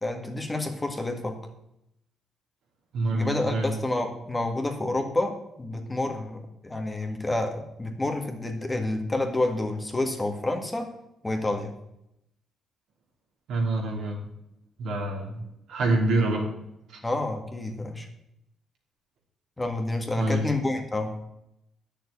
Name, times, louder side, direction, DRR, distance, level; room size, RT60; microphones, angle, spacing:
voice 1, 0.0-1.4 3.1-10.9 11.2-11.7 17.0-18.1 19.6-21.1, left 2 dB, 15° left, 3 dB, 1.9 m, -29 dB
voice 2, 2.9-3.7 13.5-14.3 14.8-16.5 16.9-17.0 20.2-20.5, right 2 dB, 75° right, 0 dB, 3.2 m, -26 dB
9.4 x 6.8 x 8.5 m, 0.82 s
cardioid pair, 90°, 0 cm